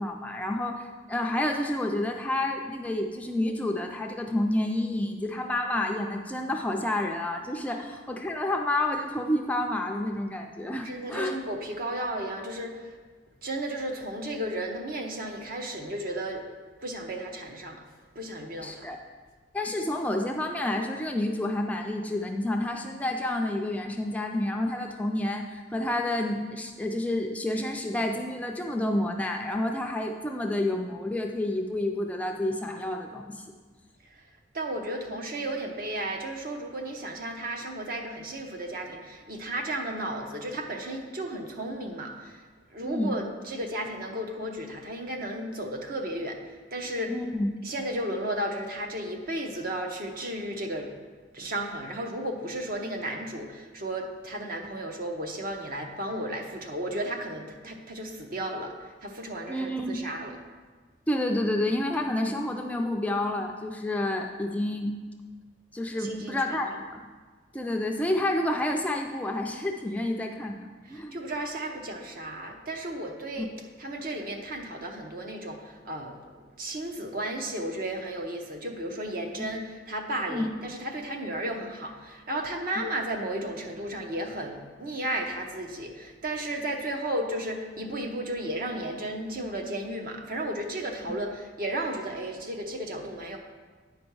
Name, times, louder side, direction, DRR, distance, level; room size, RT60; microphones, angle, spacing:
voice 1, 0.0-11.3 18.6-19.0 19.5-33.5 42.8-43.2 47.1-47.5 59.5-60.0 61.1-65.0 65.7-66.8 67.5-70.6 70.9-71.2 73.4-73.5 80.3-80.5, left 1 dB, 10° left, 2 dB, 0.4 m, -29 dB
voice 2, 10.8-12.8 13.4-16.5 16.8-17.8 18.1-18.9 34.5-42.4 42.7-46.4 46.7-47.1 47.6-50.9 51.3-58.7 59.0-60.3 66.0-66.6 70.9-73.5 73.8-76.2 76.6-93.4, right 1 dB, 50° right, 3 dB, 0.9 m, -34 dB
9.2 x 5.2 x 4.7 m, 1.5 s
head